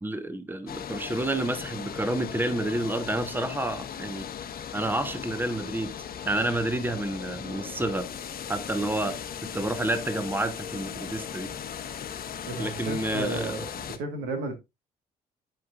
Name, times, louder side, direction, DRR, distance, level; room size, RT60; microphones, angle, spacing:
voice 1, 0.0-4.3 4.7-5.9 6.2-8.1 8.5-9.2 9.5-11.5 12.6-13.7, right 1 dB, 10° right, 1.1 m, -29 dB
sound 1, 0.7-14.0, left 8 dB, 55° left, 1.0 m, -38 dB
voice 2, 12.4-14.5, right 3 dB, 75° right, 1.6 m, -33 dB
10.5 x 5.2 x 2.5 m
hypercardioid pair, 45°, 18 cm